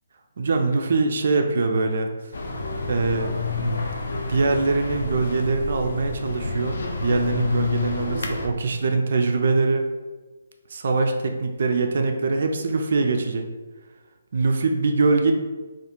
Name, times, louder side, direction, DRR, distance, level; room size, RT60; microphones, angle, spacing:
voice 1, 0.4-2.1 2.9-3.9 4.1-9.9 10.7-13.5 14.3-15.3, right 3 dB, 55° right, 4 dB, 0.3 m, -23 dB
sound 1, 2.3-8.5, left 4 dB, 60° left, 0.3 m, -29 dB
2.3 x 2.2 x 2.8 m, 1.2 s
figure-of-eight pair, 140°, 0 cm